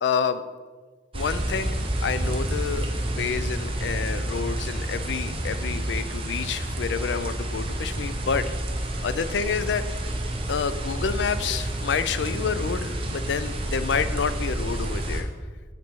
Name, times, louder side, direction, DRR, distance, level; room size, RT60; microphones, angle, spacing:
voice 1, 0.0-0.4 1.1-8.4 9.0-9.8 10.5-15.3, left 6 dB, 80° left, 12 dB, 0.4 m, -28 dB
sound 1, 1.1-15.2, right 1 dB, 30° right, 0.6 m, -29 dB
7.4 x 4.1 x 4.5 m, 1.5 s
head